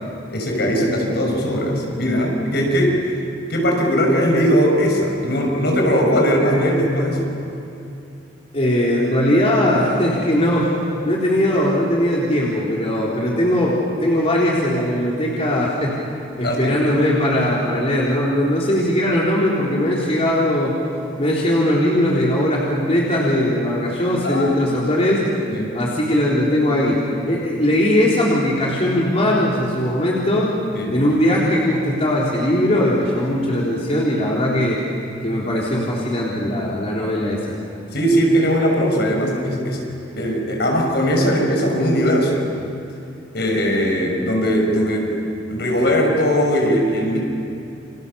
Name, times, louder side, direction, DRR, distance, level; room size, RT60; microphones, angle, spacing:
voice 1, 0.3-3.0 3.5-7.3 16.4-16.7 24.2-24.8 25.5-25.7 30.7-31.0 37.9-39.8 40.2-42.5 43.3-45.1 45.5-47.2, equal, 65° left, 1 dB, 6.4 m, -19 dB
voice 2, 8.5-10.7 11.0-16.0 16.4-20.8 21.2-25.2 25.7-30.5 30.9-34.8 35.2-37.6, left 1 dB, 35° left, -5 dB, 3.9 m, -19 dB
30.0 x 27.0 x 7.1 m, 2.8 s
head